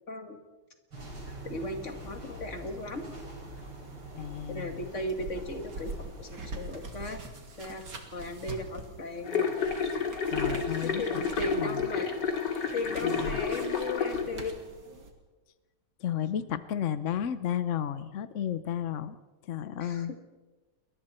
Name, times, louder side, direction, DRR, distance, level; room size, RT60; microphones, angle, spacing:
voice 1, 0.1-0.4 1.4-3.1 4.5-7.2 7.6-9.6 10.2-10.3 10.8-12.2 12.7-14.6 19.8-20.2, left 2 dB, 35° left, 5 dB, 2.4 m, -37 dB
sound 1, 0.9-6.6, right 1 dB, 80° right, 6.9 m, -45 dB
sound 2, 1.0-15.1, right 2 dB, 50° right, 3.1 m, -45 dB
voice 2, 4.1-4.9 10.3-11.2 11.5-11.8 13.0-13.4 16.0-19.2 19.4-20.1, left 9 dB, 75° left, 13 dB, 0.7 m, -33 dB
sound 3, 9.2-14.2, left 5 dB, 55° left, 2.9 m, -30 dB
29.5 x 22.5 x 4.4 m, 1.2 s
omnidirectional pair, 2.3 m